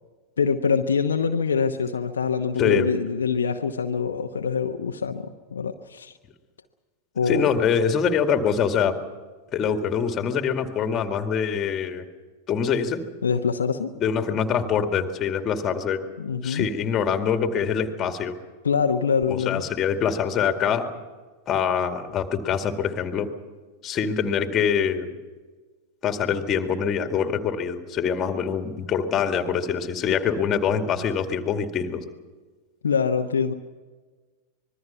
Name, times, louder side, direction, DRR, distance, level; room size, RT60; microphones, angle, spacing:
voice 1, 0.4-6.1 7.2-7.5 13.2-13.9 16.2-16.7 18.6-19.6 32.8-33.5, left 6 dB, 70° left, 4 dB, 1.0 m, -24 dB
voice 2, 7.3-9.0 9.5-12.0 12.5-13.0 14.0-16.0 16.4-18.4 19.3-20.9 21.5-23.3 23.8-25.1 26.0-32.0, left 7 dB, 30° left, 7 dB, 2.2 m, -24 dB
25.5 x 21.5 x 5.8 m, 1.3 s
figure-of-eight pair, 90°, 0 cm